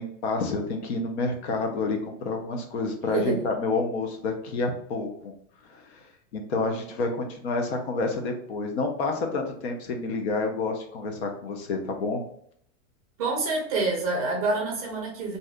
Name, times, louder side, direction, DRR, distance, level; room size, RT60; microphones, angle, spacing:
voice 1, 0.0-5.3 5.6-6.1 6.3-12.2, left 3 dB, 55° left, 3 dB, 0.7 m, -29 dB
voice 2, 3.1-3.5 13.2-15.4, right 3 dB, 30° right, 0 dB, 0.5 m, -27 dB
2.7 x 2.4 x 3.3 m, 0.66 s
supercardioid pair, 180°, 39 cm